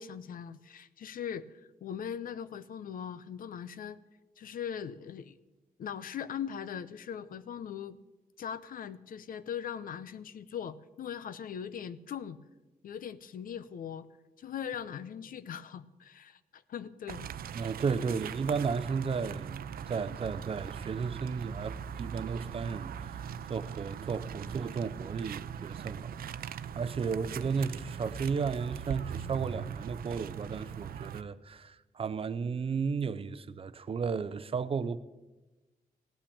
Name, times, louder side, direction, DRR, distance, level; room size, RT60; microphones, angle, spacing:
voice 1, 0.0-1.5 1.8-4.0 4.4-5.4 5.8-8.0 8.4-12.4 12.8-14.1 14.4-17.3 17.9-18.2, left 8 dB, 70° left, 0.7 m, -40 dB
sound 1, 17.1-31.2, right 8 dB, 80° right, 0.6 m, -40 dB
voice 2, 17.5-26.4 26.7-35.0, right 5 dB, 40° right, 0.6 m, -34 dB
17.0 x 8.8 x 8.6 m
wide cardioid pair, 155°, 15 cm